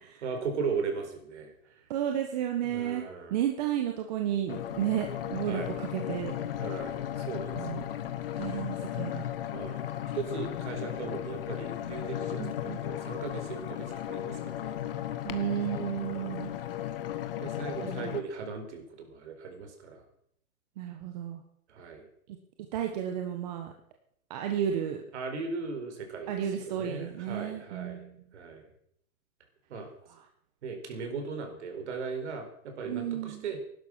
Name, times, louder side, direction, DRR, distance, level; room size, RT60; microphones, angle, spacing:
voice 1, 0.2-1.8 2.7-3.4 5.5-5.7 6.6-7.9 8.4-8.6 9.5-9.9 10.1-14.8 16.1-16.6 17.4-20.0 21.7-22.1 25.1-28.7 29.7-29.9 30.6-33.6, right 5 dB, 50° right, 5 dB, 4.7 m, -38 dB
voice 2, 1.9-3.0 3.3-6.3 7.5-7.8 8.4-9.3 12.4-12.8 15.2-16.5 17.8-18.2 20.8-21.4 22.7-23.7 24.3-25.0 26.3-28.2 32.9-33.4, right 10 dB, 30° right, 4 dB, 1.4 m, -32 dB
sound 1, 4.5-18.2, left 11 dB, 40° left, 1.2 m, -35 dB
16.0 x 12.0 x 6.4 m, 0.65 s
hypercardioid pair, 165°, 43 cm